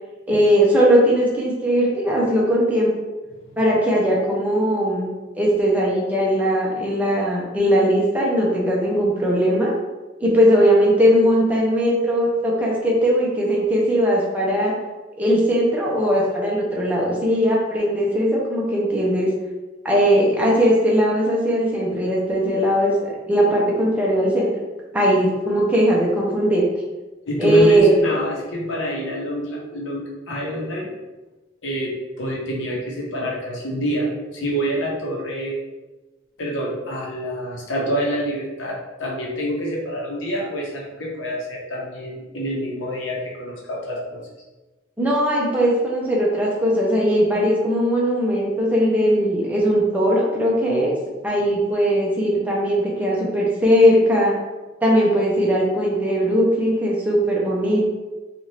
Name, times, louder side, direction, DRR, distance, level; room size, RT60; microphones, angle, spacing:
voice 1, 0.3-2.9 3.6-5.1 5.4-9.7 10.2-14.7 15.2-19.3 19.8-24.6 24.9-26.6 27.4-28.0 45.0-50.9 51.2-54.3 54.8-57.8, equal, 10° right, -5 dB, 0.5 m, -19 dB
voice 2, 27.3-30.9 31.6-35.6 36.4-44.2, equal, 85° left, -3 dB, 0.8 m, -27 dB
2.8 x 2.4 x 3.1 m, 1.1 s
head